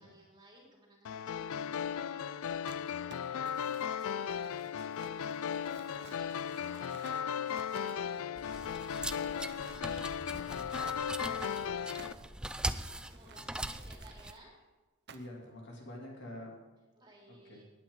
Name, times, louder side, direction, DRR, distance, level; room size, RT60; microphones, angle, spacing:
voice 1, 0.0-14.6 16.9-17.6, right 1 dB, 20° right, -2 dB, 3.2 m, -60 dB
sound 1, 1.1-12.1, left 8 dB, 75° left, 0.4 m, -36 dB
Crumpling crinkling, 2.7-8.7 9.1-10.1 10.9-14.4 15.1-15.5, right 5 dB, 50° right, 0.7 m, -56 dB
sound 2, 8.4-14.3, right 1 dB, 5° right, 0.3 m, -41 dB
voice 2, 12.6-13.0 13.4-13.8 15.1-16.5 17.5-17.6, left 1 dB, 55° left, -2 dB, 3.0 m, -47 dB
19.5 x 8.9 x 4.0 m, 1.2 s
head